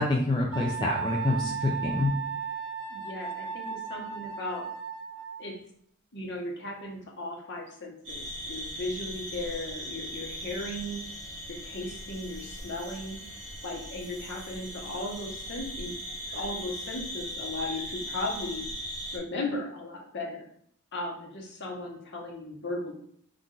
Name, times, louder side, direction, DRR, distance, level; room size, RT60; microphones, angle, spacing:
voice 1, 0.0-2.1, left 2 dB, 20° left, -2 dB, 0.4 m, -27 dB
Wind instrument woodwind instrument, 0.5-5.5, right 7 dB, 75° right, 0.5 m, -35 dB
voice 2, 2.9-4.7 5.4-5.6 6.1-11.1 11.5-13.2 13.6-15.9 16.3-18.7 19.1-20.4 20.9-22.9, left 2 dB, 50° left, -1 dB, 1.0 m, -36 dB
sound 1, 8.0-19.2, equal, 55° right, 1.2 m, -39 dB
4.1 x 2.5 x 3.8 m, 0.67 s
head